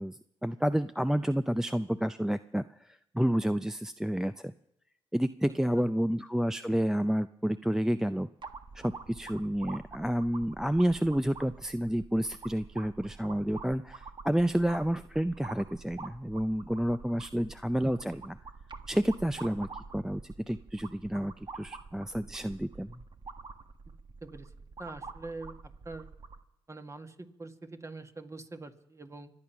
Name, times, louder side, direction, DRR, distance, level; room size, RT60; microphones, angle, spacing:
voice 1, 0.0-4.5 5.1-8.3 8.7-18.4 18.9-19.7 19.9-23.0, equal, 5° right, 11 dB, 0.5 m, -30 dB
voice 2, 5.5-5.9 17.1-17.2 24.2-24.5 24.8-25.6 25.9-26.1 26.7-29.3, right 3 dB, 25° right, 7 dB, 1.8 m, -44 dB
sound 1, 8.4-26.4, right 4 dB, 40° right, 1.4 m, -47 dB
25.5 x 8.7 x 5.9 m, 0.80 s
supercardioid pair, 50°, 12 cm